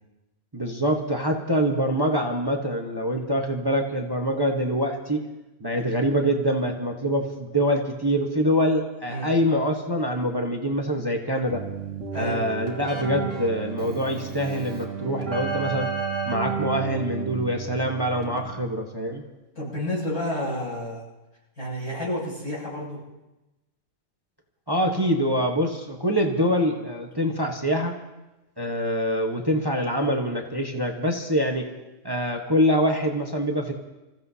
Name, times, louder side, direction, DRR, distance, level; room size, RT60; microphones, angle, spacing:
voice 1, 0.5-5.2 5.6-11.6 12.1-15.9 16.2-19.2 24.7-27.9 28.6-31.7 32.0-33.7, equal, 20° right, 2 dB, 1.1 m, -25 dB
Keyboard (musical), 11.5-18.8, right 6 dB, 55° right, 2.2 m, -32 dB
voice 2, 19.6-21.0 21.6-23.0, left 1 dB, 90° left, -6 dB, 7.8 m, -30 dB
27.0 x 15.5 x 2.8 m, 1.0 s
omnidirectional pair, 1.5 m